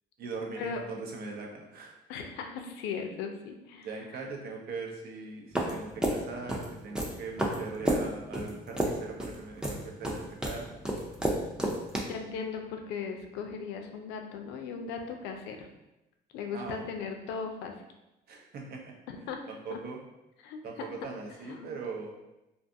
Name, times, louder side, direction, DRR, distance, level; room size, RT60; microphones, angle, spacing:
voice 1, 0.2-1.9 3.8-10.8 16.5-16.9 18.3-18.9 19.5-20.0 20.6-22.1, right 4 dB, 65° right, 0 dB, 0.6 m, -40 dB
voice 2, 2.1-3.9 12.1-15.7 16.3-17.7 19.1-19.4 19.7-19.8 20.4-20.9 21.5-21.7, left 6 dB, 90° left, 4 dB, 0.4 m, -38 dB
sound 1, 5.6-12.0, right 1 dB, 5° right, 0.4 m, -31 dB
2.5 x 2.3 x 2.6 m, 0.94 s
cardioid pair, 110°, 17 cm